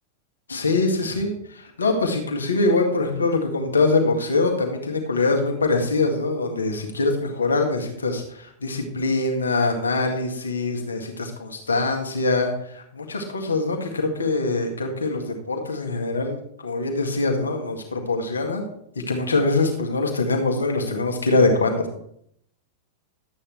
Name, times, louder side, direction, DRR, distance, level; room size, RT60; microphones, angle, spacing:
voice 1, 0.5-16.4 16.6-18.6 18.9-21.9, left 3 dB, 75° left, 2 dB, 1.8 m, -23 dB
12.0 x 8.7 x 3.4 m, 0.70 s
figure-of-eight pair, 90°, 0 cm